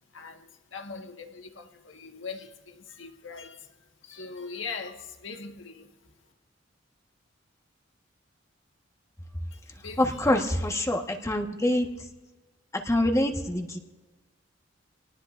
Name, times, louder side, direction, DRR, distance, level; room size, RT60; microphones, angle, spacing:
voice 1, 0.1-6.1 9.5-10.0, left 4 dB, 85° left, 1.6 m, -41 dB
voice 2, 10.0-11.9 12.8-13.8, left 1 dB, 15° left, 1.4 m, -25 dB
27.0 x 18.5 x 2.6 m
head